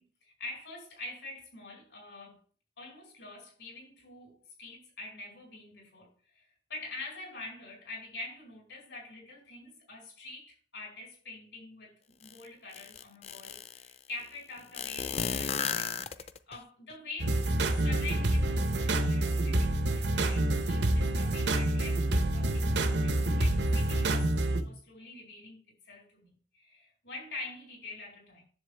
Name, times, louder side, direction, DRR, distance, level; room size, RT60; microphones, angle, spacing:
voice 1, 0.0-2.4 2.8-24.3 24.6-26.3 26.5-28.4, left 2 dB, 85° left, 5.5 m, -46 dB
sound 1, 12.2-12.3 12.7-13.9 14.7-16.6, left 6 dB, 35° left, 0.5 m, -33 dB
sound 2, 17.2-24.6, right 1 dB, 85° right, 0.9 m, -27 dB
10.5 x 7.6 x 3.4 m
head